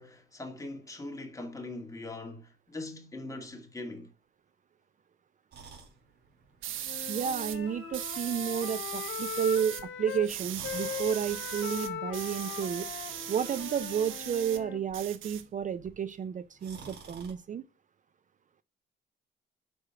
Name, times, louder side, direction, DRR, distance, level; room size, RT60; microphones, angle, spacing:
voice 1, 0.0-4.1, left 2 dB, 15° left, 2.1 m, -41 dB
sound 1, 5.5-17.3, right 4 dB, 60° right, 3.7 m, -54 dB
sound 2, 6.6-7.6 7.9-9.8 10.1-14.6 14.9-15.9, right 11 dB, 85° right, 1.0 m, -39 dB
Wind instrument woodwind instrument, 6.8-10.3 10.6-14.8, left 9 dB, 75° left, 1.2 m, -40 dB
voice 2, 7.1-12.9 13.3-17.6, right 8 dB, 40° right, 0.5 m, -31 dB
6.1 x 4.9 x 5.8 m
cardioid pair, 90°, 20 cm